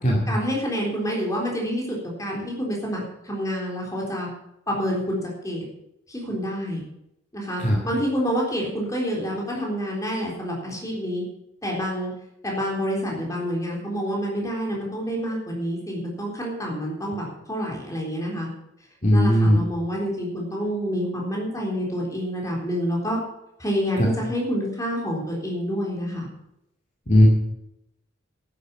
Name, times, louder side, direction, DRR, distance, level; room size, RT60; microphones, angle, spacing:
voice 1, 0.3-4.3 4.7-5.6 6.1-6.8 7.3-11.2 11.6-12.1 12.4-18.5 19.1-23.2 23.6-26.3, equal, 15° left, -2 dB, 3.7 m, -28 dB
voice 2, 19.0-19.6 27.1-27.3, equal, 40° left, -2 dB, 2.3 m, -16 dB
11.5 x 10.0 x 7.1 m, 0.84 s
head